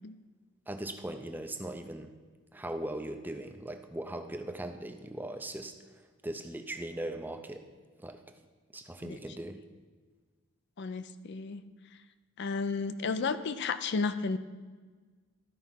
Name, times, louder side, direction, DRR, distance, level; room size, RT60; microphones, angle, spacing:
voice 1, 0.7-2.1 2.5-7.7 8.0-8.2 8.7-9.7, right 1 dB, 10° right, 7 dB, 0.4 m, -39 dB
voice 2, 10.8-11.6 12.4-14.4, left 4 dB, 50° left, 12 dB, 0.4 m, -32 dB
12.5 x 4.7 x 5.7 m, 1.4 s
head